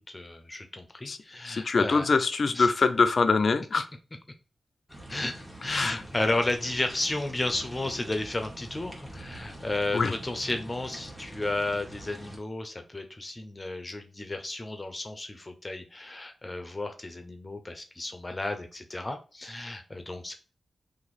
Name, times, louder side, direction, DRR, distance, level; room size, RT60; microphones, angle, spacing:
voice 1, 0.1-2.1 2.5-2.7 5.1-20.3, left 2 dB, 30° left, 0.8 m, -33 dB
voice 2, 1.4-3.9 5.7-6.0 9.9-10.1, left 4 dB, 60° left, 0.4 m, -24 dB
sound 1, 4.9-12.4, right 1 dB, 10° right, 1.4 m, -45 dB
2.9 x 2.6 x 4.0 m
cardioid pair, 60°, 0 cm